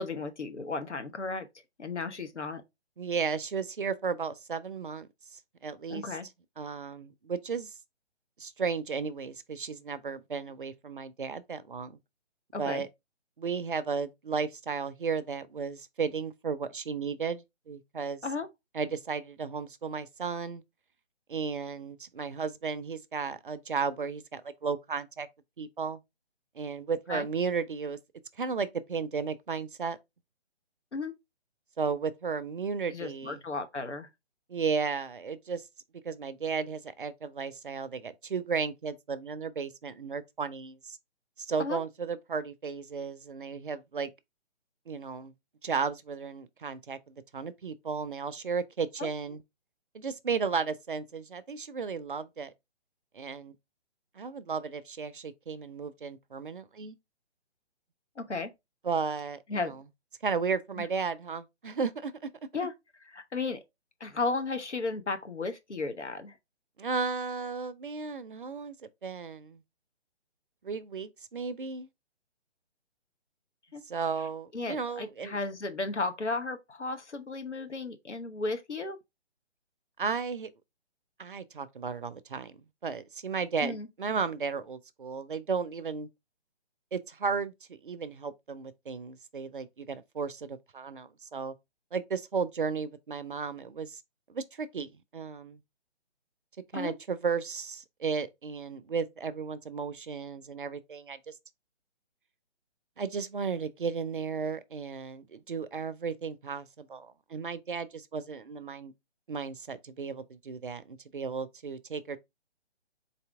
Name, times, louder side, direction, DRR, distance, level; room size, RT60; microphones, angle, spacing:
voice 1, 0.0-1.5 1.8-2.6 5.9-6.3 12.5-12.8 18.2-18.5 27.1-27.3 30.9-31.1 32.9-34.1 41.6-41.8 49.0-49.1 58.2-58.5 59.5-59.7 60.8-60.9 62.5-62.7 63.0-63.6 64.0-66.4 73.7-73.8 74.5-79.0 83.6-83.9 96.7-96.9, left 3 dB, 85° left, 0.9 m, -34 dB
voice 2, 3.0-6.1 6.6-7.7 8.4-12.0 12.6-12.9 13.4-18.2 18.7-20.6 21.3-25.3 25.6-26.0 26.6-28.0 28.4-30.0 31.8-33.4 34.5-35.6 36.0-41.0 41.4-44.1 44.9-45.3 45.6-49.4 49.9-52.5 53.1-53.5 54.2-57.0 58.8-59.8 60.2-62.3 66.8-68.7 69.0-69.6 70.6-71.9 73.9-75.4 80.0-80.5 81.2-86.1 86.9-91.5 91.9-94.0 94.3-95.6 96.7-101.4 103.0-108.9 109.3-112.2, right 5 dB, 50° right, 0.4 m, -34 dB
4.1 x 2.7 x 3.3 m
figure-of-eight pair, 140°, 34 cm